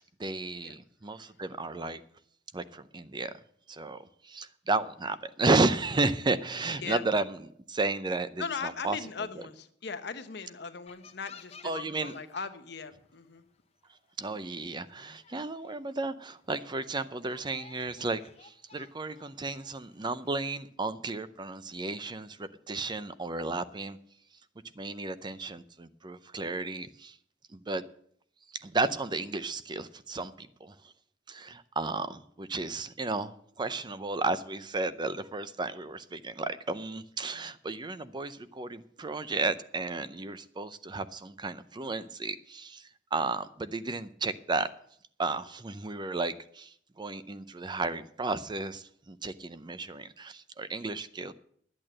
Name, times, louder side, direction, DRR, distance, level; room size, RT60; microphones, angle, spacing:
voice 1, 0.0-2.0 2.5-3.3 3.7-4.0 4.2-7.4 7.7-9.0 11.6-12.1 14.2-24.0 24.8-27.1 27.5-27.8 28.6-30.7 31.3-44.7 45.2-51.3, right 3 dB, 25° right, 13 dB, 0.6 m, -33 dB
voice 2, 8.4-13.5, left 5 dB, 65° left, 9 dB, 1.0 m, -39 dB
sound 1, 10.9-12.7 13.0-13.4 14.1-14.2 14.6-14.7 15.0-15.9 16.4-16.5 17.1-20.7, left 7 dB, 35° left, 0.8 m, -53 dB
10.5 x 8.7 x 7.7 m, 0.64 s
head